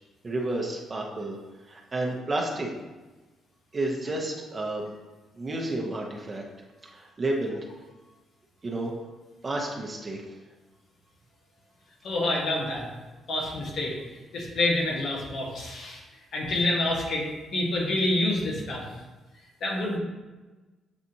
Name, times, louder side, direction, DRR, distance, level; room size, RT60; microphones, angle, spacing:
voice 1, 0.2-1.4 1.7-2.7 3.7-4.9 5.3-6.4 6.8-7.6 8.6-8.9 9.4-10.2, right 2 dB, 30° right, 0 dB, 0.8 m, -31 dB
voice 2, 12.0-12.9 13.3-13.9 14.3-16.0 16.3-18.9 19.6-20.0, left 2 dB, 60° left, -1 dB, 1.1 m, -27 dB
7.0 x 2.5 x 2.8 m, 1.2 s
cardioid pair, 90°, 0 cm